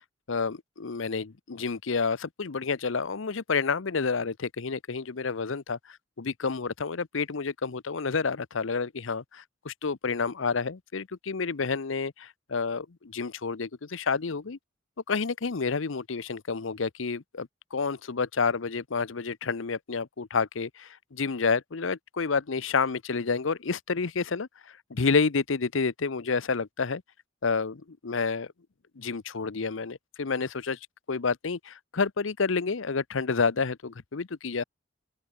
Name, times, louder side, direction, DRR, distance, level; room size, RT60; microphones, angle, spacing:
voice 1, 0.3-14.6 15.1-24.5 24.9-27.0 27.4-28.5 29.0-30.8 31.1-34.6, left 4 dB, 75° left, 0.8 m, -29 dB
open air
head